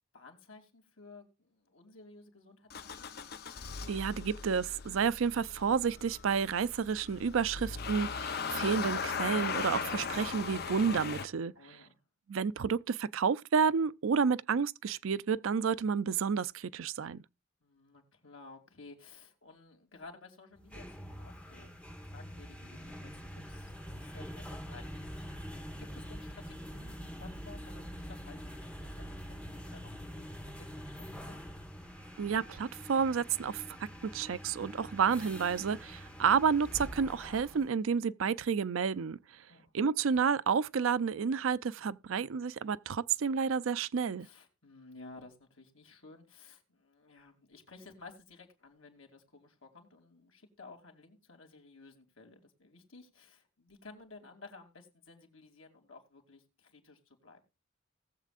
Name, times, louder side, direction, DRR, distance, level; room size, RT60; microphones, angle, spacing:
voice 1, 0.1-3.2 11.5-12.0 17.6-31.4 39.5-39.7 44.2-57.4, left 3 dB, 85° left, 2.8 m, -55 dB
Motor vehicle (road) / Engine starting, 2.7-11.3, left 5 dB, 50° left, 0.7 m, -38 dB
voice 2, 3.9-11.5 12.3-17.2 32.2-39.2 39.7-44.3, right 6 dB, 85° right, 0.5 m, -30 dB
sound 1, 20.6-37.7, equal, 5° left, 1.4 m, -45 dB
19.0 x 7.4 x 2.5 m
head